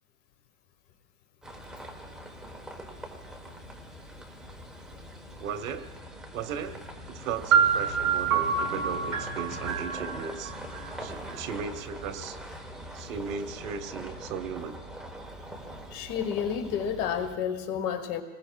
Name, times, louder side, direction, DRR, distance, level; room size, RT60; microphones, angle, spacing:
sound 1, 1.4-17.3, equal, ahead, 1.0 m, -42 dB
voice 1, 5.4-5.9 6.3-6.8 7.1-10.5 11.0-12.4 12.9-14.8, right 6 dB, 60° right, 9 dB, 1.3 m, -36 dB
sound 2, 7.5-11.4, right 7 dB, 30° right, 3.0 m, -27 dB
voice 2, 15.9-18.2, left 8 dB, 30° left, 9 dB, 1.1 m, -30 dB
27.5 x 20.5 x 2.3 m, 1.3 s
supercardioid pair, 150°, 44 cm